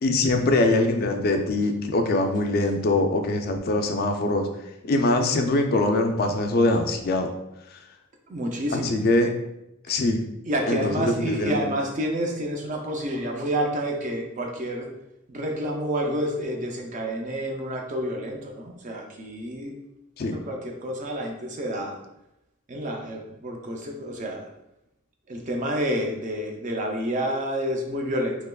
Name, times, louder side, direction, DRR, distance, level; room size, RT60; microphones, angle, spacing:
voice 1, 0.0-4.5 4.8-7.3 8.7-9.3 9.9-10.2 10.7-11.7 20.2-20.4, left 2 dB, 45° left, 5 dB, 0.3 m, -23 dB
voice 2, 8.3-9.0 9.9-10.0 10.5-14.9 15.3-19.7 20.3-22.0 22.7-24.4 25.3-28.4, equal, 35° right, 2 dB, 0.4 m, -29 dB
3.4 x 2.9 x 2.3 m, 0.88 s
head